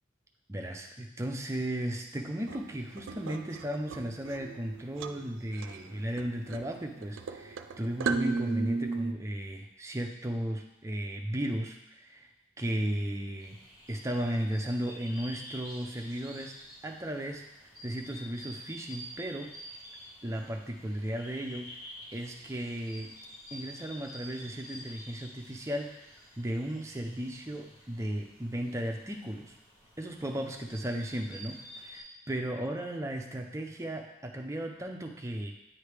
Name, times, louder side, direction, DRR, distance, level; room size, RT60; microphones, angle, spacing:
voice 1, 0.5-12.3 12.6-13.6 13.9-16.6 16.8-19.5 20.2-21.7 22.1-23.1 23.5-25.9 26.4-29.6 30.0-35.5, right 1 dB, 15° right, 2 dB, 0.5 m, -35 dB
sound 1, 2.4-9.1, right 4 dB, 85° right, 0.3 m, -36 dB
sound 2, 13.4-32.0, equal, 55° left, 1.8 m, -49 dB
9.3 x 3.2 x 3.3 m, 0.90 s
head